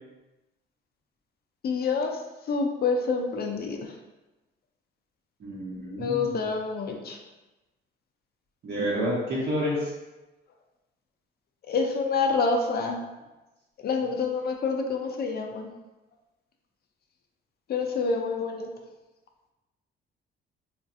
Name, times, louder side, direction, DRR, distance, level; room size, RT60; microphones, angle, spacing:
voice 1, 1.6-2.2 2.5-3.9 6.0-7.2 11.7-13.0 13.8-15.7 17.7-18.7, left 4 dB, 50° left, 3 dB, 0.5 m, -27 dB
voice 2, 5.4-6.4 8.6-9.9, equal, 55° right, -5 dB, 1.0 m, -29 dB
4.4 x 2.5 x 2.5 m, 1.1 s
cardioid pair, 90°, 20 cm